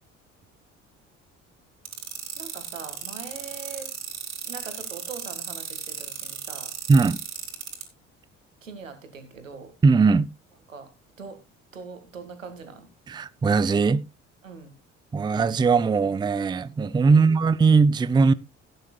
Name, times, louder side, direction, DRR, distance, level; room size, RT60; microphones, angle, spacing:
sound 1, 1.9-7.8, right 8 dB, 45° right, 3.5 m, -35 dB
voice 1, 2.4-3.9 4.4-6.7 8.6-9.7 10.7-10.9 11.2-11.4 11.7-12.9 14.4-14.8 17.1-17.3, right 5 dB, 85° right, 2.0 m, -41 dB
voice 2, 9.8-10.3 13.1-14.0 15.1-18.3, right 4 dB, 10° right, 0.5 m, -19 dB
16.5 x 9.4 x 2.3 m
figure-of-eight pair, 55°, 38 cm